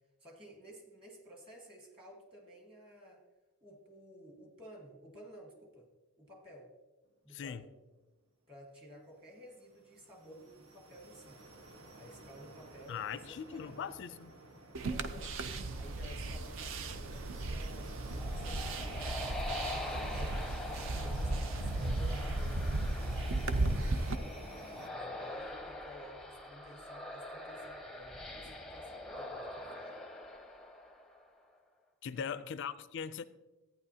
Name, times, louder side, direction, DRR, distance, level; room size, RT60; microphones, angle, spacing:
voice 1, 0.2-3.3 3.6-5.9 6.2-6.7 7.2-7.7 8.5-11.4 12.0-13.9 14.8-15.4 15.7-19.1 19.8-20.7 21.0-24.4 24.8-30.0 32.1-32.4, equal, 25° right, 1 dB, 1.6 m, -54 dB
voice 2, 7.3-7.6 12.9-14.3 32.0-33.3, left 7 dB, 55° left, 14 dB, 0.3 m, -40 dB
sound 1, 9.2-24.9, right 2 dB, 75° right, 1.3 m, -53 dB
sound 2, 14.7-24.2, right 2 dB, 60° right, 0.6 m, -35 dB
sound 3, 17.8-31.4, left 1 dB, ahead, 0.6 m, -44 dB
14.0 x 9.2 x 2.8 m, 1.2 s
head